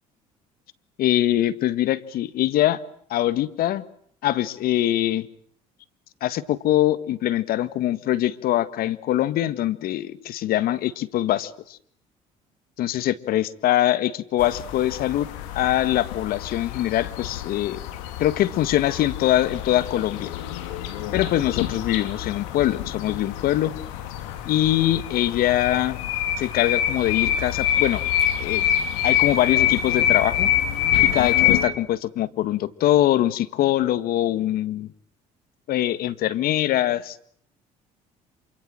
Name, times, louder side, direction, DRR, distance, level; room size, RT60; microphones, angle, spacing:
voice 1, 1.0-2.8 3.1-3.9 4.2-5.3 6.2-11.8 12.8-15.3 15.6-17.8 18.2-20.3 21.1-23.7 24.5-26.0 26.4-28.0 28.4-28.7 29.0-30.5 31.0-34.9 35.7-37.3, left 13 dB, 70° left, 15 dB, 1.8 m, -23 dB
sound 1, 14.4-31.6, left 10 dB, 90° left, 3.4 m, -26 dB
27.5 x 25.5 x 7.8 m, 0.63 s
supercardioid pair, 70°, 16 cm